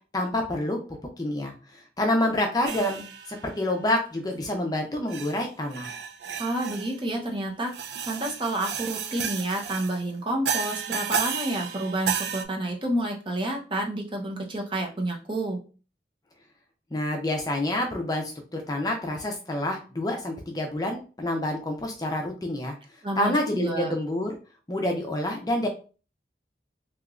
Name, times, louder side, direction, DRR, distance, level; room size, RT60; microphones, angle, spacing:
voice 1, 0.1-0.8 1.2-5.9 16.9-22.8 23.2-24.4 24.7-25.7, left 1 dB, 20° left, 2 dB, 0.5 m, -28 dB
sound 1, 2.7-3.5 4.3-4.4 5.1-5.4 5.7-7.0 7.7-10.0 10.5-12.4, right 7 dB, 75° right, 0.4 m, -32 dB
voice 2, 6.4-15.6 23.0-23.9, right 1 dB, 30° right, 1 dB, 0.7 m, -29 dB
3.5 x 2.8 x 2.4 m, 0.35 s
head